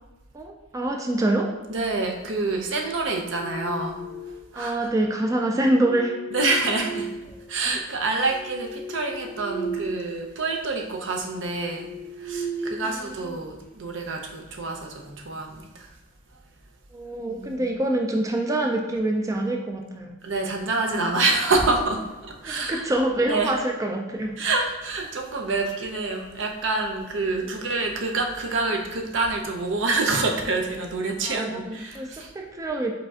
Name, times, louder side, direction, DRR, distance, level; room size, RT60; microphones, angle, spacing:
voice 1, 0.3-1.5 4.6-6.1 16.9-20.1 22.5-24.3 31.3-32.1 32.4-32.9, right 1 dB, 15° right, 2 dB, 0.3 m, -25 dB
voice 2, 1.7-4.0 4.3-4.9 6.3-7.1 7.5-15.9 17.3-17.7 20.2-22.9 23.2-23.6 24.4-32.3, right 3 dB, 70° right, 2 dB, 0.6 m, -27 dB
sound 1, 3.1-4.6 5.6-7.7 8.2-10.1 10.4-10.6 11.1-13.4, right 2 dB, 20° left, 0.7 m, -36 dB
4.9 x 4.2 x 2.4 m, 1.1 s
head